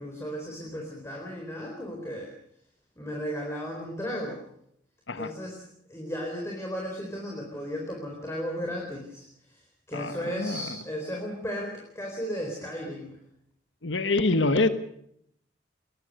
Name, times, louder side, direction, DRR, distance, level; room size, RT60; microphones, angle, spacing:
voice 1, 0.0-2.3 3.0-4.4 5.2-5.6 5.9-9.2 9.5-9.6 9.9-13.1, equal, 15° left, 0 dB, 4.3 m, -35 dB
voice 2, 9.9-10.7 13.8-14.7, left 2 dB, 85° left, 10 dB, 1.4 m, -25 dB
21.5 x 21.5 x 6.6 m, 0.72 s
head